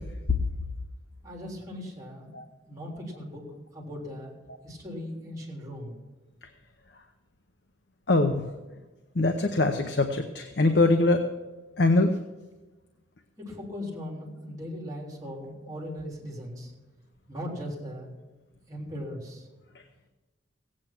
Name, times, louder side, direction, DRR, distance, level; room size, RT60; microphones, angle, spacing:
voice 1, 1.2-2.3 2.7-3.4 3.7-4.3 4.6-6.0 13.4-16.7 17.3-18.1 18.7-19.5, equal, 20° right, -2 dB, 3.6 m, -38 dB
voice 2, 8.1-8.4 9.2-11.2 11.8-12.1, left 2 dB, 60° left, 6 dB, 0.8 m, -22 dB
16.5 x 8.7 x 6.0 m, 1.2 s
head